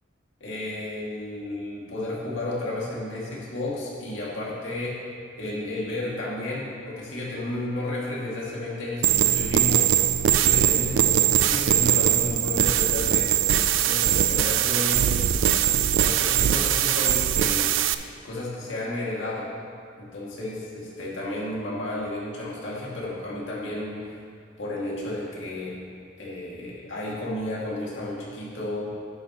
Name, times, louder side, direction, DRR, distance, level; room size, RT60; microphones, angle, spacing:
voice 1, 0.4-4.9 5.3-9.9 10.4-13.3 13.8-15.1 15.9-17.7 18.2-19.5 20.0-24.1 24.6-25.8 26.2-28.9, left 1 dB, 70° left, -6 dB, 2.2 m, -32 dB
sound 1, 9.0-17.9, right 10 dB, 70° right, 0.4 m, -21 dB
11.0 x 9.1 x 3.0 m, 2.2 s
head